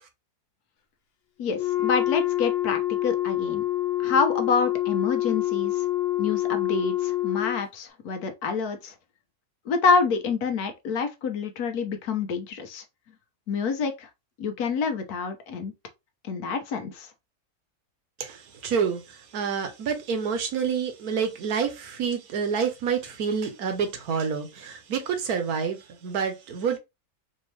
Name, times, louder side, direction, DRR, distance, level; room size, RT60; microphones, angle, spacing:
voice 1, 1.4-3.6 4.0-5.9 6.2-8.9 9.6-12.8 13.5-14.1 14.4-15.7 16.2-17.1, left 5 dB, 75° left, 1.3 m, -27 dB
Wind instrument woodwind instrument, 1.5-7.6, left 15 dB, 55° left, 0.7 m, -26 dB
voice 2, 18.2-26.8, right 6 dB, 70° right, 1.3 m, -28 dB
4.3 x 2.8 x 3.1 m
omnidirectional pair, 1.7 m